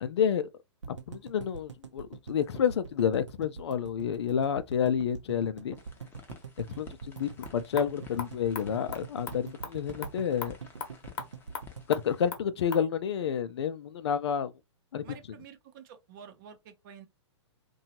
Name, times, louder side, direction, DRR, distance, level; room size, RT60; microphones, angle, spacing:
voice 1, 0.0-0.5 1.1-5.7 6.6-10.6 11.9-14.5 14.9-15.1, left 8 dB, 65° left, 0.4 m, -29 dB
sound 1, 0.8-13.0 13.3-13.4 13.6-13.7, right 6 dB, 80° right, 0.6 m, -44 dB
sound 2, 5.8-12.3, left 6 dB, 15° left, 0.6 m, -53 dB
sound 3, 7.1-12.9, left 6 dB, 45° left, 0.8 m, -43 dB
voice 2, 15.0-17.1, right 8 dB, 45° right, 0.7 m, -50 dB
2.8 x 2.3 x 2.8 m
figure-of-eight pair, 115°, 15 cm